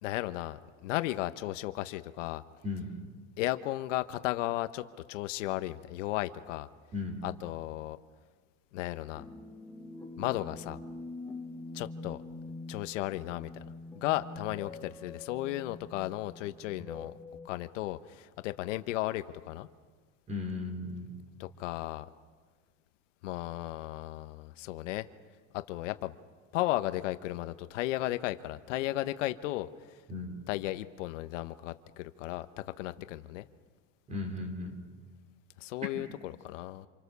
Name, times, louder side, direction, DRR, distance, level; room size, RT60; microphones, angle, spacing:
voice 1, 0.0-2.4 3.4-4.8 5.1-6.7 7.2-8.0 8.7-9.3 10.2-10.8 11.7-12.2 12.7-13.5 13.9-17.1 17.4-19.7 21.4-22.1 23.2-25.1 25.5-26.2 26.5-30.0 30.5-32.5 32.8-33.5 35.6-36.9, left 16 dB, 85° left, 11 dB, 1.2 m, -35 dB
voice 2, 6.9-7.2 20.3-21.1 30.1-30.4 34.1-34.7, left 3 dB, 20° right, 4 dB, 3.7 m, -36 dB
sound 1, 9.1-17.5, left 2 dB, 5° left, 1.0 m, -45 dB
28.0 x 27.5 x 6.9 m, 1.5 s
supercardioid pair, 175°, 36 cm